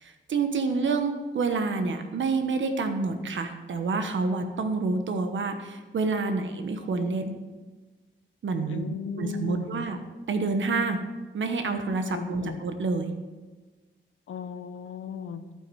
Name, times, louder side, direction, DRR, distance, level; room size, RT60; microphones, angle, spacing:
voice 1, 0.0-7.4 8.4-8.8 9.2-10.0 10.3-11.1 11.3-13.1, right 4 dB, 70° right, 7 dB, 1.2 m, -28 dB
voice 2, 8.7-9.9 12.1-12.6 14.3-15.4, left 7 dB, 80° left, 10 dB, 0.9 m, -36 dB
11.5 x 9.3 x 4.8 m, 1.3 s
wide cardioid pair, 130°, 21 cm